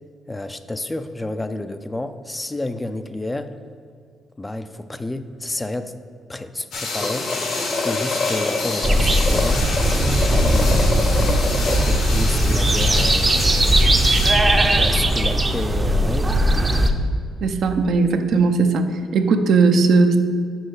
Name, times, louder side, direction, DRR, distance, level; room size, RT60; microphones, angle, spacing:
voice 1, 0.3-3.6 4.4-5.9 6.3-7.3 7.8-9.7 10.4-16.4, left 2 dB, 15° left, 10 dB, 0.4 m, -30 dB
sound 1, 6.7-14.3, left 3 dB, 80° left, 1.6 m, -29 dB
sound 2, 6.9-12.0, left 3 dB, 35° left, 0.8 m, -27 dB
sound 3, 8.8-16.9, right 1 dB, 25° right, 0.6 m, -18 dB
voice 2, 17.4-18.9 19.1-20.2, right 4 dB, 70° right, 7 dB, 0.6 m, -17 dB
6.4 x 5.3 x 4.8 m, 2.2 s
cardioid pair, 90°, 0 cm